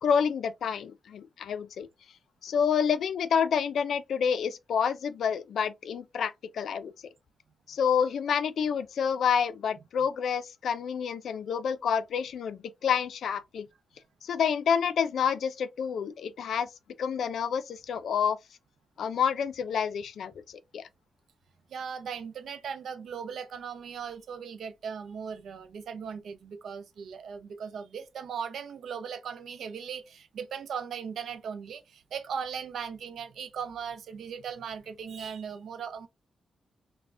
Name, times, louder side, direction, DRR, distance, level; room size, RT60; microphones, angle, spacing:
voice 1, 0.0-1.9 2.4-6.9 7.7-13.7 14.2-16.7 17.0-18.4 19.0-20.8, left 7 dB, 80° left, 0.3 m, -28 dB
voice 2, 21.7-36.1, right 7 dB, 80° right, 0.4 m, -38 dB
3.2 x 2.1 x 2.4 m
wide cardioid pair, 115°, 0 cm